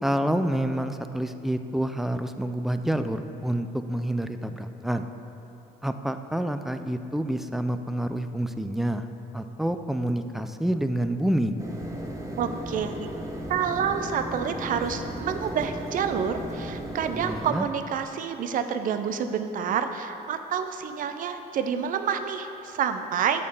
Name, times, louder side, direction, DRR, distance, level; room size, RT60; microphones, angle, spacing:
voice 1, 0.0-5.0 5.8-11.5 17.1-17.7, right 1 dB, ahead, 8 dB, 0.3 m, -28 dB
sound 1, 11.6-17.5, equal, 20° right, 1.0 m, -35 dB
voice 2, 12.4-12.9 13.5-23.4, right 7 dB, 55° right, 9 dB, 0.6 m, -28 dB
8.3 x 4.4 x 6.9 m, 3.0 s
cardioid pair, 110°, 17 cm